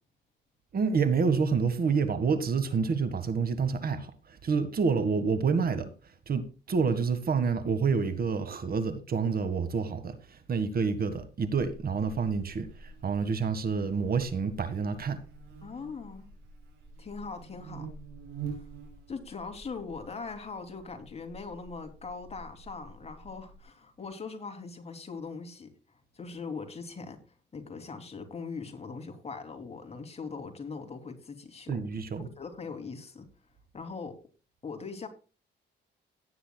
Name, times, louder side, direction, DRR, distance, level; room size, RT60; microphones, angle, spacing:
voice 1, 0.7-5.9 6.3-15.2 31.7-32.3, right 5 dB, 50° right, 1.7 m, -28 dB
Buzz, 11.5-23.6, right 5 dB, 85° right, 6.8 m, -47 dB
voice 2, 15.6-16.3 17.0-17.9 18.5-18.6 19.1-25.7 26.1-27.2 27.5-31.8 32.2-33.3 33.7-34.2 34.6-35.1, left 4 dB, 30° left, 2.8 m, -41 dB
17.5 x 9.6 x 2.3 m
cardioid pair, 90°, 20 cm